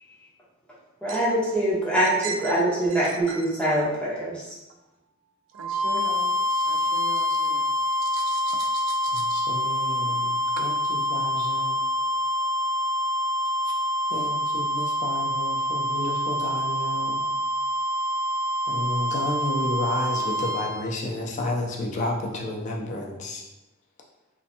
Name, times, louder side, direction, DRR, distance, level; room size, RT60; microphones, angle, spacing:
voice 1, 1.0-4.4, right 1 dB, 5° left, -8 dB, 0.7 m, -24 dB
voice 2, 2.2-2.6 2.9-3.4 5.5-9.3 10.5-10.6 12.0-12.8, right 5 dB, 80° right, 4 dB, 0.3 m, -39 dB
sound 1, 5.5-20.8, left 1 dB, 40° right, 0.8 m, -26 dB
voice 3, 9.1-11.8 14.1-17.2 18.7-23.4, left 1 dB, 40° left, -1 dB, 0.4 m, -31 dB
2.7 x 2.1 x 2.5 m, 0.97 s
head